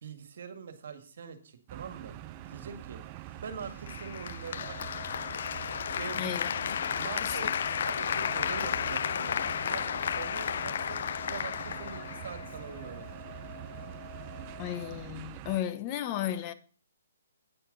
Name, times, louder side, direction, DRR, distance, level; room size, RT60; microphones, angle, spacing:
voice 1, 0.0-2.2 2.5-3.0 3.4-5.1 5.8-6.6 7.0-9.3 9.7-11.0 11.3-13.4, right 6 dB, 60° right, 1.8 m, -43 dB
sound 1, 1.7-15.6, right 13 dB, 25° right, 0.4 m, -45 dB
Applause, 3.9-12.9, left 8 dB, 55° left, 0.3 m, -33 dB
sound 2, 4.6-15.0, left 7 dB, 5° left, 2.0 m, -49 dB
voice 2, 6.2-6.5 7.2-7.5 14.6-16.5, left 11 dB, 25° left, 0.8 m, -34 dB
9.2 x 9.1 x 3.9 m
hypercardioid pair, 160°, 0 cm